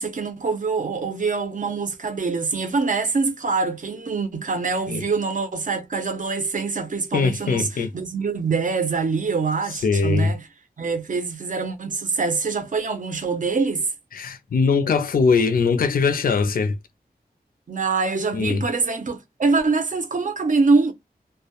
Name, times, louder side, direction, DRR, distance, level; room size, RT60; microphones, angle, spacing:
voice 1, 0.0-10.5 10.8-13.9 17.7-20.9, right 4 dB, 55° right, 0.6 m, -24 dB
voice 2, 7.1-7.9 9.8-10.3 14.2-16.7 18.3-18.6, left 5 dB, 60° left, 0.4 m, -21 dB
2.2 x 2.0 x 2.8 m
wide cardioid pair, 105°, 16 cm